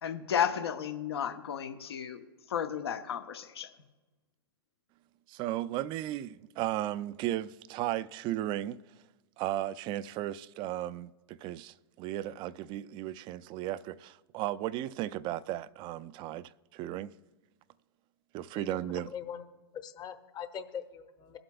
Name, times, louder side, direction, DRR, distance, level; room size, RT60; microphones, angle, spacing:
voice 1, 0.0-3.7, left 8 dB, 75° left, 0.9 m, -33 dB
voice 2, 5.3-8.8 9.4-17.1 18.3-19.1, right 13 dB, 35° right, 0.4 m, -35 dB
voice 3, 19.1-19.4 19.8-21.4, left 8 dB, 30° left, 0.9 m, -42 dB
23.0 x 7.9 x 2.3 m
hypercardioid pair, 100°, 13 cm